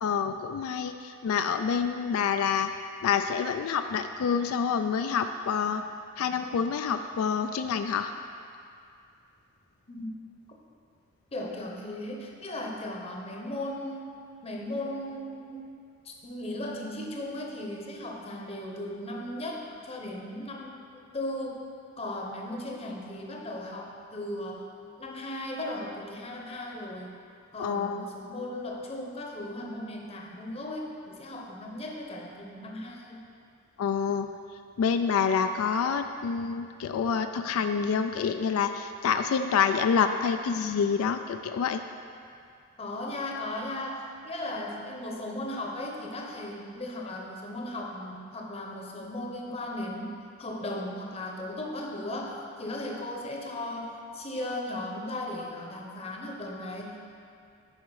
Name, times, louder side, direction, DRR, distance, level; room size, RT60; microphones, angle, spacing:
voice 1, 0.0-2.7 3.0-5.8 6.2-8.1 27.6-28.1 33.8-34.3 34.8-41.8, left 6 dB, 85° left, 7 dB, 0.3 m, -27 dB
voice 2, 11.3-14.1 14.4-15.7 16.0-20.9 21.1-24.7 25.0-27.1 27.5-33.2 42.8-50.1 50.4-57.0, left 1 dB, 30° left, 0 dB, 0.7 m, -37 dB
9.7 x 4.7 x 4.7 m, 2.4 s
head